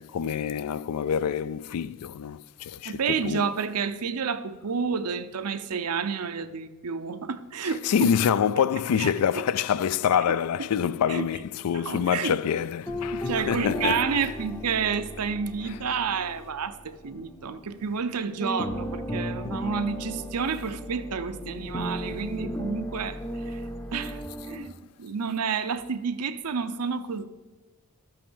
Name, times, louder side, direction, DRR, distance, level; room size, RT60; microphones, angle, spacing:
voice 1, 0.0-3.5 7.6-14.2 15.7-15.8, left 8 dB, 80° left, 0.4 m, -26 dB
voice 2, 2.9-8.1 9.0-9.1 11.1-11.3 11.7-12.3 13.1-23.2 23.5-23.6 23.9-24.2 24.5-24.7 25.0-27.3, right 6 dB, 85° right, 0.7 m, -30 dB
sound 1, 12.8-18.1 18.4-24.7, equal, 10° left, 0.6 m, -35 dB
12.5 x 5.7 x 6.9 m
head